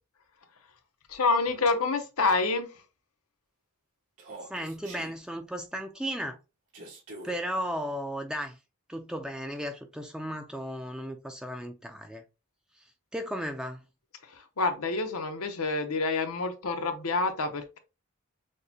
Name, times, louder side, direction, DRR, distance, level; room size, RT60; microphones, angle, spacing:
voice 1, 1.1-2.8 14.2-17.8, left 3 dB, 80° left, 0.8 m, -28 dB
Human voice, 4.2-5.2 6.7-7.4, right 2 dB, 80° right, 2.5 m, -44 dB
voice 2, 4.5-6.4 7.2-8.6 8.9-12.2 13.1-13.8, equal, 5° right, 0.4 m, -35 dB
6.4 x 2.2 x 2.8 m
head